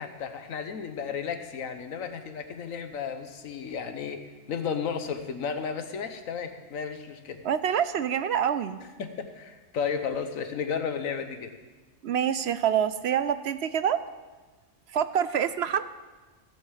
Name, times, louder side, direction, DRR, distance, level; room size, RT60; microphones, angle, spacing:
voice 1, 0.0-4.2 4.5-7.4 9.0-11.5, left 6 dB, 90° left, 8 dB, 1.4 m, -33 dB
voice 2, 7.4-8.8 12.0-14.0 14.9-15.9, right 8 dB, 65° right, 13 dB, 0.7 m, -26 dB
16.5 x 6.7 x 7.4 m, 1.3 s
omnidirectional pair, 1.4 m